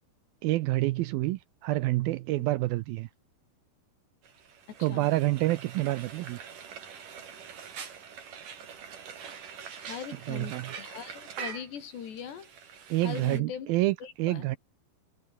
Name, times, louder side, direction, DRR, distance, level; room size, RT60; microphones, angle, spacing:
voice 1, 0.4-3.1 4.8-6.4 10.3-10.7 12.9-14.6, right 18 dB, 85° right, 2.2 m, -28 dB
Frying (food), 4.2-13.4, right 7 dB, 55° right, 4.5 m, -44 dB
voice 2, 4.7-5.1 9.8-12.5 13.0-13.7 14.0-14.5, left 8 dB, 85° left, 5.5 m, -40 dB
omnidirectional pair, 4.8 m